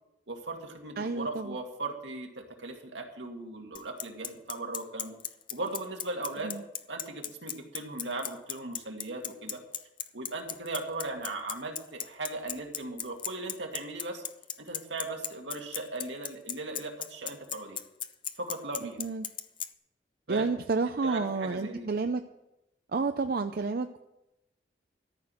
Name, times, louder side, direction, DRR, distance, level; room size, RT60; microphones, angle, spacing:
voice 1, 0.3-5.2 5.5-6.5 6.9-9.6 10.1-14.2 14.6-17.8 18.4-19.0 20.3-20.5 21.0-21.9, right 2 dB, 80° right, 2 dB, 2.2 m, -38 dB
voice 2, 1.0-1.6 6.4-6.6 18.8-19.2 20.3-22.2 22.9-24.0, right 4 dB, 55° right, 8 dB, 0.5 m, -30 dB
Bicycle, 3.8-19.7, left 9 dB, 30° left, 0.5 m, -36 dB
14.0 x 6.0 x 9.7 m, 0.90 s
head